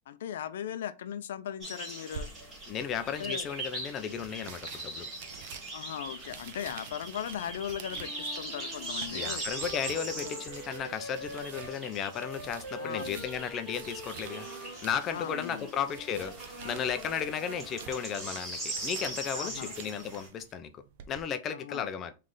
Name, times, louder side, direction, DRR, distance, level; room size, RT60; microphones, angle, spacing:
voice 1, 0.1-2.3 3.0-3.5 5.7-9.5 10.1-10.4 12.8-13.3 15.1-15.7 19.3-19.9 21.5-21.9, left 10 dB, 80° left, 0.4 m, -38 dB
sound 1, 1.6-20.3, right 1 dB, 15° right, 2.1 m, -41 dB
sound 2, 2.1-21.2, right 8 dB, 55° right, 0.6 m, -49 dB
voice 2, 2.7-5.1 9.1-22.1, left 8 dB, 25° left, 0.5 m, -35 dB
Wind instrument woodwind instrument, 7.9-11.8 12.1-16.3, equal, 5° left, 1.8 m, -45 dB
3.7 x 3.2 x 3.8 m
supercardioid pair, 160°, 0 cm